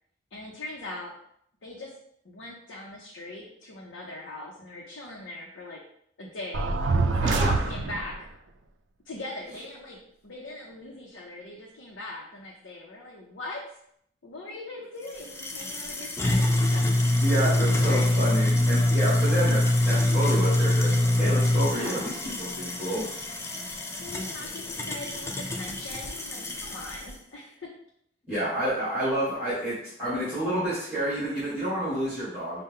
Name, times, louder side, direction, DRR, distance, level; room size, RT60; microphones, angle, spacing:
voice 1, 0.3-1.1 1.6-1.9 2.2-5.8 6.2-6.7 7.2-8.3 9.1-10.0 10.2-13.8 14.2-16.5 16.7-18.3 21.4-22.1 23.5-23.7 24.0-27.7, left 2 dB, 70° left, -3 dB, 0.7 m, -41 dB
sound 1, 6.5-8.2, right 3 dB, 70° right, 0.4 m, -25 dB
voice 2, 7.2-7.7 17.2-23.4 28.3-32.6, right 1 dB, 10° right, -12 dB, 1.7 m, -29 dB
sound 2, 15.1-27.1, left 1 dB, 15° left, 0.3 m, -25 dB
5.5 x 2.2 x 3.6 m, 0.70 s
head